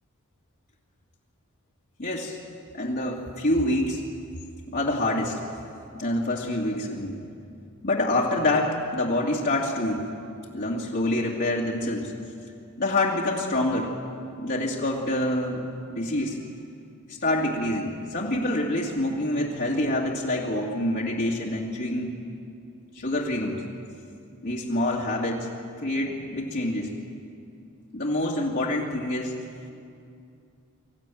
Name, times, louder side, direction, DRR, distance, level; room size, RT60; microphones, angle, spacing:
voice 1, 2.0-2.4 2.7-4.0 4.7-5.4 5.9-7.2 7.8-10.0 10.5-12.1 12.8-14.0 14.4-16.4 17.1-22.1 22.9-23.6 24.4-25.5 25.8-26.9 27.9-29.3, left 1 dB, 50° left, -5 dB, 2.4 m, -26 dB
24.5 x 15.0 x 9.3 m, 2.4 s
head